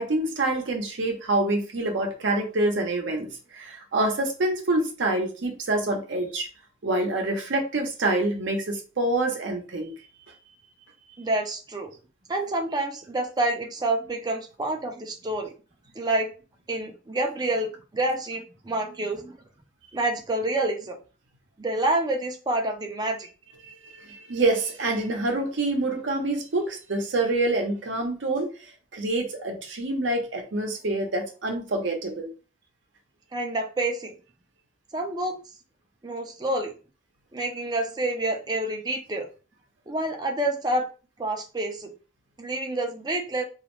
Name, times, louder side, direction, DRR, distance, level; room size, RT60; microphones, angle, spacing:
voice 1, 0.0-6.5 6.8-9.9 23.6-28.5 28.9-32.3, right 2 dB, 70° right, 2 dB, 0.7 m, -26 dB
voice 2, 11.2-11.9 12.3-15.5 16.0-16.3 16.7-19.4 19.9-21.0 21.6-23.3 33.3-34.1 34.9-35.4 36.0-36.7 37.3-39.3 39.9-40.9 41.2-41.9 42.4-43.4, right 2 dB, 20° right, 2 dB, 0.4 m, -28 dB
2.4 x 2.0 x 3.0 m, 0.35 s
head